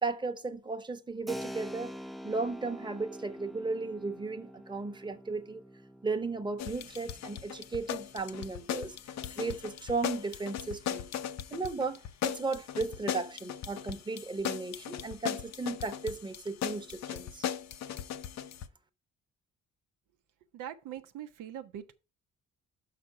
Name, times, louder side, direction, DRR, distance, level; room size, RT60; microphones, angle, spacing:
voice 1, 0.0-1.9 2.2-5.6 6.0-9.0 9.3-11.1 11.5-17.5, right 3 dB, 15° right, 0.9 m, -35 dB
Keyboard (musical), 1.3-9.6, equal, ahead, 0.4 m, -47 dB
sound 1, 6.6-18.7, left 9 dB, 65° left, 0.7 m, -38 dB
voice 2, 20.5-21.9, right 10 dB, 85° right, 0.8 m, -42 dB
5.8 x 5.8 x 4.8 m
cardioid pair, 90°, 30 cm